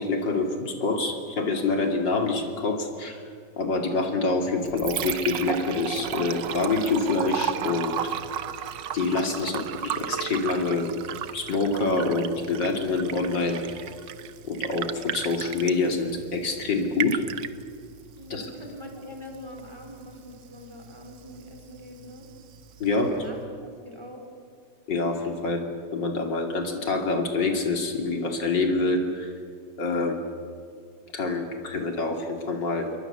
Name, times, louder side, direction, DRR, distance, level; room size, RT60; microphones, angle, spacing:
voice 1, 0.0-3.2 3.6-8.0 8.9-10.9 11.3-13.6 14.4-17.2 18.3-18.5 22.8-23.1 24.9-25.6 25.9-29.3 29.8-30.2 31.1-32.9, left 3 dB, 85° left, 3 dB, 3.4 m, -26 dB
Liquid, 4.4-23.5, right 9 dB, 90° right, 1.6 m, -35 dB
voice 2, 18.2-22.3 22.9-24.2, left 1 dB, 15° right, 1 dB, 4.6 m, -43 dB
28.5 x 22.5 x 7.0 m, 2.2 s
omnidirectional pair, 1.9 m